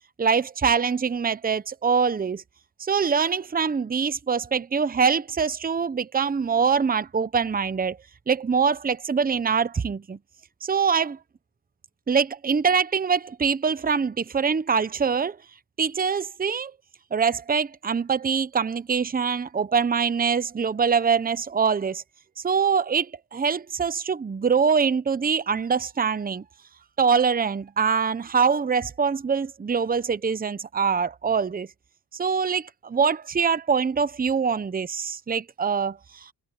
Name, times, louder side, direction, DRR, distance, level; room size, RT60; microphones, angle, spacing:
voice 1, 0.2-2.4 2.8-8.0 8.3-10.2 10.6-11.2 12.1-15.4 15.8-16.7 17.1-22.0 22.4-26.4 27.0-31.7 32.1-36.3, right 6 dB, 20° right, 0.8 m, -24 dB
cardioid pair, 95°, 44 cm